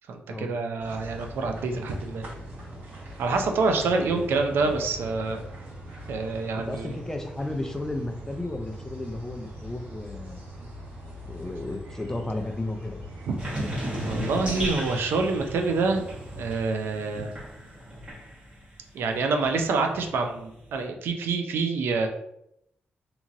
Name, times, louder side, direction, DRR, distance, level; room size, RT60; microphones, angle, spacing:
voice 1, 0.1-2.2 3.2-5.4 6.1-6.9 14.0-16.0 16.4-17.3 18.9-22.1, right 4 dB, 85° right, 4 dB, 0.4 m, -26 dB
sound 1, 0.8-16.6, equal, 60° right, 1.4 m, -42 dB
voice 2, 3.8-4.7 6.5-10.4 11.3-13.0, left 2 dB, 15° left, 5 dB, 0.4 m, -34 dB
sound 2, 13.4-18.7 19.1-20.8, equal, 35° right, 1.3 m, -35 dB
2.8 x 2.7 x 2.5 m, 0.78 s
cardioid pair, 100°, 4 cm